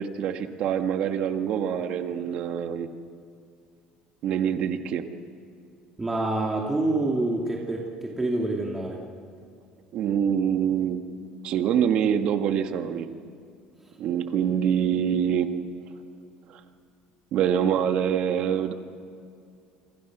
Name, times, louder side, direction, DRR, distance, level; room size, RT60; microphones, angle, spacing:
voice 1, 0.0-2.9 4.2-5.0 9.9-11.1 11.4-13.1 14.0-15.5 16.5-16.6 17.3-18.7, right 8 dB, 60° right, 7 dB, 1.8 m, -25 dB
voice 2, 6.0-9.0, right 2 dB, 15° right, -2 dB, 2.5 m, -27 dB
29.0 x 25.5 x 6.2 m, 2.4 s
cardioid pair, 140°, 2 cm